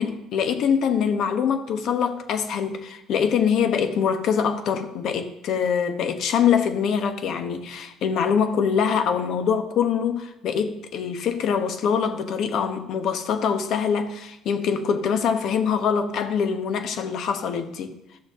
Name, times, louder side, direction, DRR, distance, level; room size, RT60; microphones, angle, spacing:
voice 1, 0.0-17.9, left 7 dB, 60° left, 1.1 m, -24 dB
14.0 x 6.7 x 3.7 m
cardioid pair, 130°, 0 cm